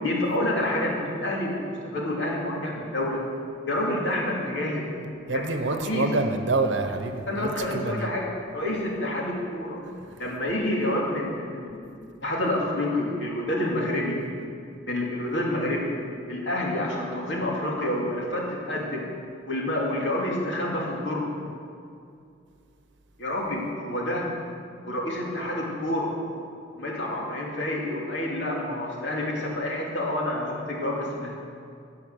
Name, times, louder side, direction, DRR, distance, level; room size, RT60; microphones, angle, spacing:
voice 1, 0.0-3.2 3.6-4.9 5.3-6.1 7.3-8.3 8.5-9.8 10.2-14.2 14.9-15.9 16.3-19.0 19.4-21.3 23.2-24.3 24.8-26.1 26.7-31.4, left 1 dB, 75° left, -3 dB, 2.5 m, -28 dB
voice 2, 5.3-8.1, right 3 dB, 75° right, 7 dB, 0.8 m, -27 dB
16.5 x 5.6 x 6.4 m, 2.5 s
head